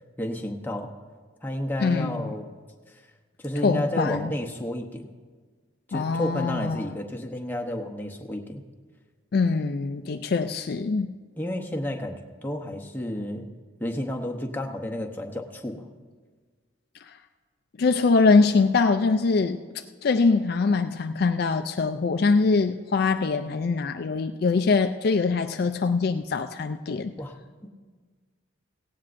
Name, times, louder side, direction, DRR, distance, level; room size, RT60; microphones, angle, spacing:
voice 1, 0.2-0.9 1.4-2.5 2.9-3.0 3.4-5.1 5.9-8.6 11.4-13.5 13.8-15.9 27.2-27.4, left 1 dB, 10° left, 1 dB, 0.8 m, -31 dB
voice 2, 1.8-2.3 3.6-4.3 5.9-6.9 9.3-11.1 17.1-17.2 17.8-27.1, left 4 dB, 50° left, 8 dB, 0.3 m, -23 dB
17.5 x 16.5 x 2.6 m, 1.5 s
head